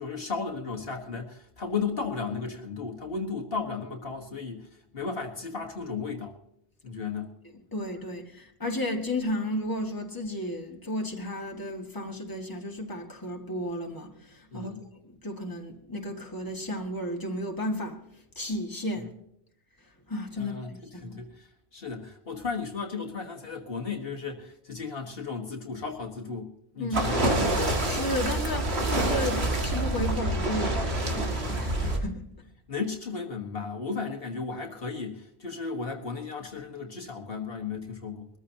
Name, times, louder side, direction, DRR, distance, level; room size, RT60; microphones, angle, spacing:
voice 1, 0.0-6.4 6.8-7.3 14.5-14.8 19.0-19.1 20.4-27.2 31.0-31.3 32.7-38.3, left 5 dB, 65° left, 1.7 m, -35 dB
voice 2, 7.7-18.0 18.4-19.1 20.1-21.2 26.8-27.1 27.8-30.8 31.1-32.2, left 1 dB, 20° left, 2.0 m, -33 dB
sound 1, 26.9-32.0, right 1 dB, 85° right, 2.4 m, -27 dB
22.5 x 14.0 x 2.8 m
omnidirectional pair, 1.1 m